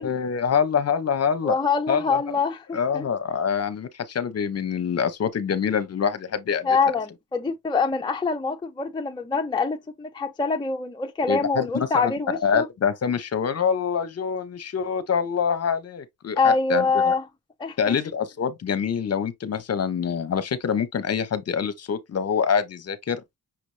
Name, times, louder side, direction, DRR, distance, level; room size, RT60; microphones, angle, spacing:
voice 1, 0.0-1.6 1.9-2.4 2.7-6.7 11.3-17.1 17.8-23.2, left 7 dB, 50° left, 0.8 m, -25 dB
voice 2, 1.4-3.1 6.6-12.7 16.4-17.2 17.6-18.0, left 4 dB, 15° left, 0.5 m, -25 dB
5.9 x 2.5 x 3.2 m
cardioid pair, 115°, 33 cm